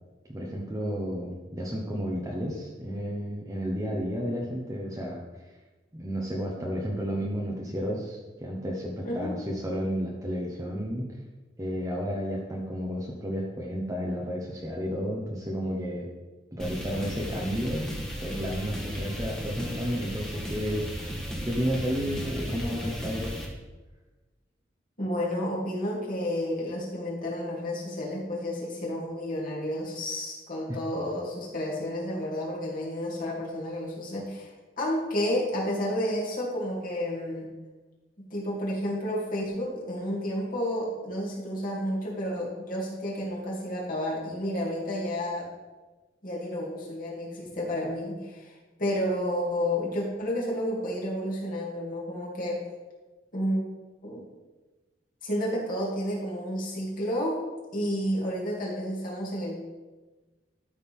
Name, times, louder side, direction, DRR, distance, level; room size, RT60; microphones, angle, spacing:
voice 1, 0.3-5.2 5.9-11.2 11.6-16.1 16.5-17.9 18.2-20.9 21.5-23.4 30.7-30.8, equal, 20° right, -3 dB, 1.0 m, -32 dB
sound 1, 16.6-23.5, equal, 5° left, 1.5 m, -35 dB
voice 2, 25.0-34.5 34.8-37.5 38.2-45.5 46.2-52.6 53.3-53.7 54.0-54.3 55.2-57.4 57.7-59.6, equal, 50° left, -4 dB, 2.8 m, -31 dB
12.5 x 6.5 x 3.7 m, 1.2 s
head